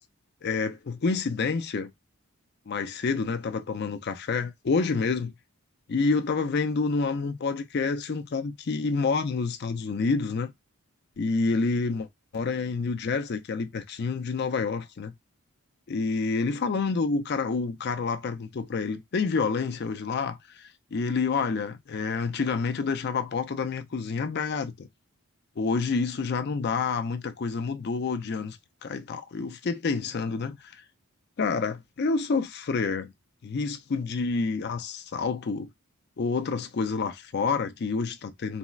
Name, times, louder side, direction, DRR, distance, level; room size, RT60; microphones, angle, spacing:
voice 1, 0.4-1.9 2.7-5.4 5.9-10.5 11.2-12.1 12.3-15.1 15.9-24.9 25.6-30.8 31.4-33.1 33.4-35.7 36.2-38.6, left 4 dB, 45° left, 0.4 m, -28 dB
4.1 x 2.0 x 2.2 m
head